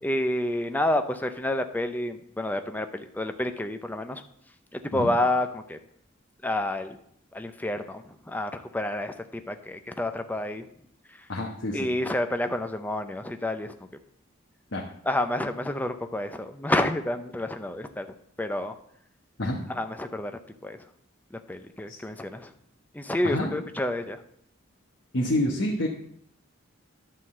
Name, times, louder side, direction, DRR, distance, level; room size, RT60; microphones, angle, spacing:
voice 1, 0.0-4.2 4.7-5.8 6.4-7.0 7.3-9.1 9.5-10.7 11.7-13.7 15.0-18.1 18.4-18.8 19.7-20.3 20.6-20.8 21.3-22.5 22.9-24.2, left 1 dB, 10° left, 7 dB, 0.5 m, -29 dB
voice 2, 11.3-11.8 14.7-14.8 19.4-19.6 21.9-22.0 23.2-23.5 25.1-25.9, left 1 dB, 65° left, -1 dB, 1.2 m, -27 dB
11.0 x 3.8 x 7.5 m, 0.70 s
head